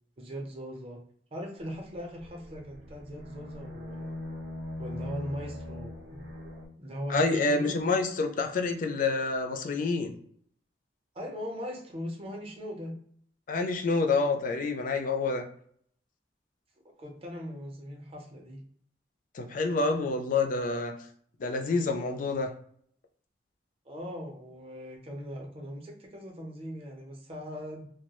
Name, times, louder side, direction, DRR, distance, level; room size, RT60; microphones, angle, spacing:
voice 1, 0.2-1.0 1.3-4.2 4.8-6.2 6.8-7.8 11.1-12.9 17.0-18.6 23.9-27.9, equal, 30° right, 0 dB, 0.6 m, -39 dB
sound 1, 2.2-6.7, left 1 dB, 75° right, 0.6 m, -40 dB
voice 2, 7.1-10.1 13.5-15.4 19.3-20.9 21.4-22.5, left 3 dB, 45° left, 4 dB, 0.3 m, -28 dB
2.2 x 2.1 x 2.9 m, 0.62 s
head